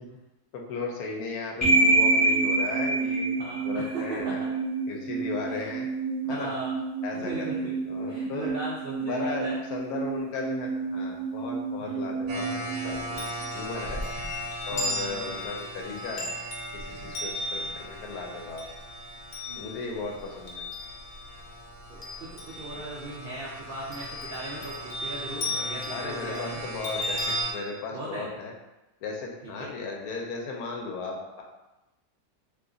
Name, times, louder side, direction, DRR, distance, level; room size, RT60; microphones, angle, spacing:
voice 1, 0.5-3.3 3.6-4.4 4.9-5.9 6.3-6.5 7.0-7.5 7.9-8.5 9.0-13.3 13.5-14.0 14.7-16.4 16.7-18.6 19.6-20.7 25.9-28.5 29.0-31.4, left 3 dB, 80° left, 0 dB, 1.1 m, -36 dB
sound 1, 1.6-13.7, right 3 dB, 15° left, 0.6 m, -28 dB
voice 2, 3.4-4.5 5.5-5.7 6.2-6.8 7.1-7.8 8.1-9.6 11.8-12.2 14.7-15.3 19.5-20.1 21.9-26.6 27.9-28.3 29.4-29.7, right 2 dB, 90° right, -5 dB, 0.4 m, -38 dB
sound 2, 12.3-27.5, right 1 dB, 70° right, 1.0 m, -40 dB
Chime, 12.9-21.4 21.8-23.1 23.9-27.4, left 1 dB, 60° left, 0.8 m, -36 dB
2.8 x 2.4 x 3.7 m, 0.99 s
omnidirectional pair, 1.6 m